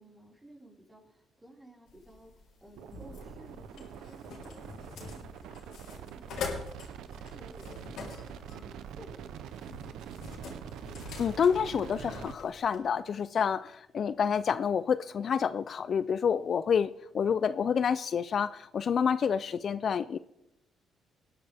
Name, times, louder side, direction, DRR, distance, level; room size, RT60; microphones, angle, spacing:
voice 1, 0.0-6.7 7.0-10.5, equal, 10° right, -3 dB, 5.0 m, -55 dB
sound 1, 1.9-12.8, left 4 dB, 80° left, 3.5 m, -44 dB
sound 2, 2.8-12.3, right 9 dB, 85° right, 0.7 m, -45 dB
voice 2, 11.2-20.2, left 7 dB, 55° left, 14 dB, 0.4 m, -28 dB
19.5 x 10.5 x 3.5 m, 0.89 s
cardioid pair, 90°, 0 cm